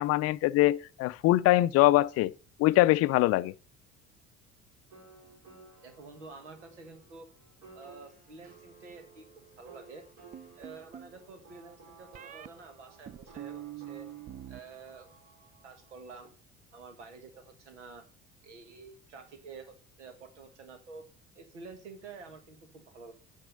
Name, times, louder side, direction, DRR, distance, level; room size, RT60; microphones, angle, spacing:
voice 1, 0.0-2.3 2.6-3.5, left 16 dB, 45° left, 0.5 m, -23 dB
sound 1, 4.9-16.3, right 4 dB, 50° right, 3.5 m, -57 dB
voice 2, 5.8-7.3 7.7-9.3 9.6-10.0 10.6-14.1 14.5-15.1 15.6-16.3 16.7-18.1 18.4-21.0 21.3-23.1, right 4 dB, 80° right, 1.6 m, -49 dB
sound 2, 10.3-11.2 12.1-12.5 13.1-14.6 14.9-15.5, right 11 dB, 25° right, 0.4 m, -45 dB
9.0 x 6.0 x 5.4 m
figure-of-eight pair, 60°, 35 cm